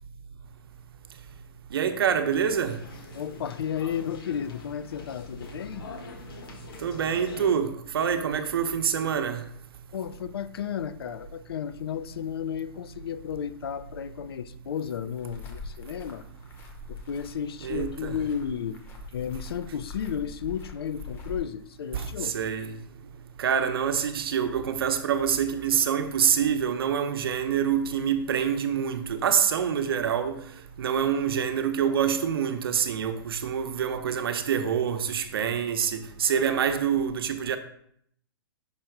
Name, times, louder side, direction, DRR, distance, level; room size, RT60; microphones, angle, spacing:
voice 1, 1.7-2.8 6.8-9.4 17.6-18.2 21.9-22.7 23.4-30.4 30.8-37.6, right 8 dB, 75° right, 0.7 m, -26 dB
sound 1, 2.2-7.5, left 3 dB, 70° left, 1.4 m, -44 dB
voice 2, 3.1-5.9 9.9-16.2 16.9-18.8 19.1-22.3 36.3-36.6, left 8 dB, 85° left, 0.5 m, -33 dB
sound 2, 15.2-21.4, left 3 dB, 15° left, 0.7 m, -42 dB
5.7 x 3.8 x 4.5 m
hypercardioid pair, 160°, 12 cm